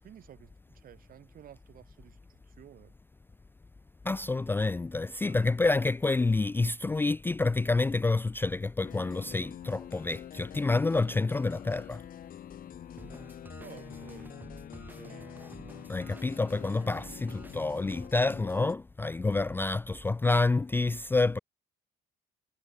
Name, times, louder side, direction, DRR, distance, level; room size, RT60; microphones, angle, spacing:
voice 1, 0.0-2.9 5.1-5.5 13.6-14.4 14.7-15.3, right 10 dB, 55° right, 7.3 m, -53 dB
voice 2, 4.0-12.0 15.9-21.4, left 3 dB, 10° left, 0.4 m, -28 dB
sound 1, 8.8-18.8, left 10 dB, 55° left, 3.4 m, -46 dB
sound 2, 13.0-18.1, right 2 dB, 10° right, 1.4 m, -49 dB
cardioid pair, 110°, 17 cm